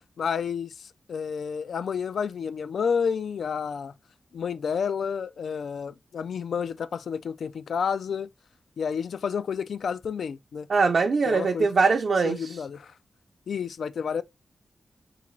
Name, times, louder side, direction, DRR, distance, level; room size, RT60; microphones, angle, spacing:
voice 1, 0.2-3.9 4.3-8.3 8.8-10.7 11.2-11.7 12.2-12.9 13.5-14.2, left 6 dB, 85° left, 0.3 m, -30 dB
voice 2, 10.7-12.6, right 4 dB, 55° right, 0.4 m, -22 dB
3.7 x 3.7 x 3.1 m
wide cardioid pair, 170°, 0 cm